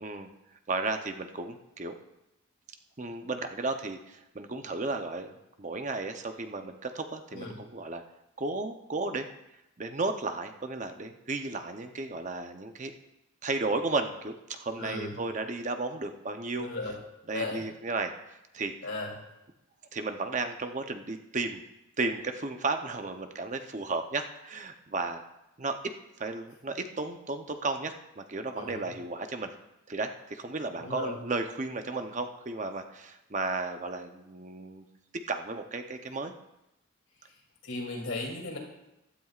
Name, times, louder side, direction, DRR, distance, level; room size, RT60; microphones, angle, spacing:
voice 1, 0.0-0.3 0.7-1.9 3.0-5.3 5.6-8.0 8.4-9.3 9.8-12.9 13.4-16.7 17.3-18.1 18.5-18.7 19.9-21.6 22.0-25.2 25.6-25.7 26.2-29.5 29.9-34.8 35.3-36.3, right 3 dB, 40° right, 6 dB, 0.7 m, -34 dB
voice 2, 14.8-15.2 16.6-17.0 17.3-17.7 18.8-19.1 28.5-28.9 30.8-31.2 37.6-38.6, left 2 dB, 90° left, -1 dB, 3.1 m, -36 dB
15.5 x 12.5 x 2.5 m, 0.91 s
head